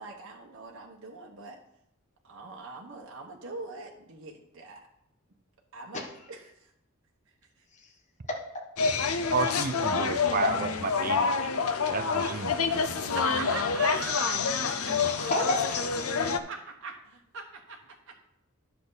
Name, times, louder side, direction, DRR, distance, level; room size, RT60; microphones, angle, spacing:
voice 1, 0.0-1.6 2.2-4.8 5.7-6.0 6.3-6.7 12.3-12.9 13.1-15.0 16.5-17.8 18.1-18.2, right 4 dB, 60° right, -1 dB, 1.1 m, -42 dB
voice 2, 5.9-6.3 14.5-15.8, left 1 dB, 35° left, 0 dB, 1.4 m, -32 dB
sound 1, 8.8-16.4, left 5 dB, 90° left, 0.7 m, -27 dB
voice 3, 9.3-11.5 11.9-12.9 13.1-13.3, right 5 dB, 40° right, 11 dB, 0.5 m, -33 dB
10.5 x 6.9 x 4.0 m, 0.80 s
head